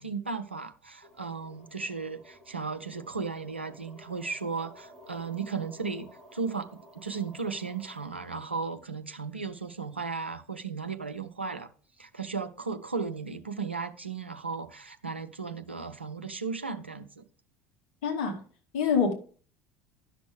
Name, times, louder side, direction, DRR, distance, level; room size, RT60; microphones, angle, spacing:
voice 1, 0.0-11.7 12.0-17.2, right 5 dB, 85° right, 0.6 m, -35 dB
sound 1, 1.0-8.1, equal, 5° left, 3.0 m, -53 dB
voice 2, 18.0-18.4 18.7-19.1, left 6 dB, 60° left, 1.7 m, -25 dB
11.5 x 6.1 x 3.4 m
figure-of-eight pair, 65°, 6 cm